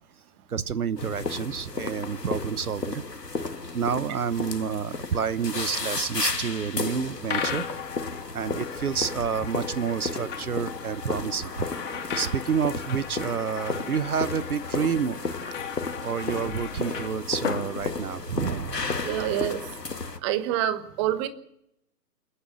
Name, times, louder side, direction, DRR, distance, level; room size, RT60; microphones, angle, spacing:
voice 1, 0.5-3.0 3.7-7.6 8.1-11.7 12.1-15.2 16.0-18.8, right 7 dB, 65° right, 16 dB, 1.0 m, -29 dB
sound 1, 1.0-20.2, left 3 dB, 85° left, 1.9 m, -34 dB
sound 2, 7.3-18.5, left 7 dB, 50° left, 2.8 m, -37 dB
voice 2, 19.0-19.6 20.2-21.3, right 12 dB, 20° right, 12 dB, 1.2 m, -26 dB
28.5 x 10.0 x 10.0 m, 0.78 s
figure-of-eight pair, 130°, 48 cm